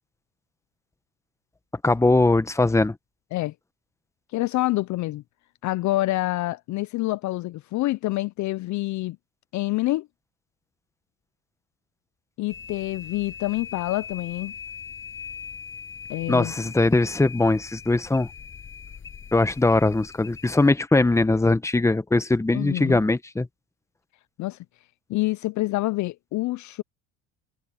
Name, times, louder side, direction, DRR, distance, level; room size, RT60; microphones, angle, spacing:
voice 1, 1.8-2.9 16.3-18.3 19.3-23.5, left 2 dB, 10° left, 1.0 m, -21 dB
voice 2, 4.3-5.2 5.6-9.2 9.5-10.1 12.4-14.5 16.1-16.5 22.5-23.0 24.4-24.6 25.1-26.8, left 18 dB, 55° left, 0.5 m, -27 dB
sound 1, 12.5-20.7, left 6 dB, 35° left, 7.1 m, -40 dB
cardioid pair, 110°, 35 cm